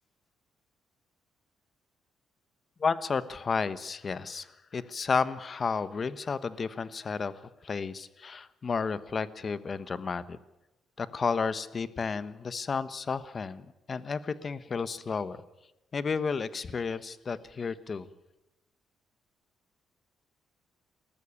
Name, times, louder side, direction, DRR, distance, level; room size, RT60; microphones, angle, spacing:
voice 1, 2.8-4.5 4.7-10.4 11.0-15.4 15.9-18.1, left 5 dB, 40° left, 15 dB, 1.1 m, -32 dB
20.0 x 14.0 x 9.8 m, 1.0 s
cardioid pair, 90°, 0 cm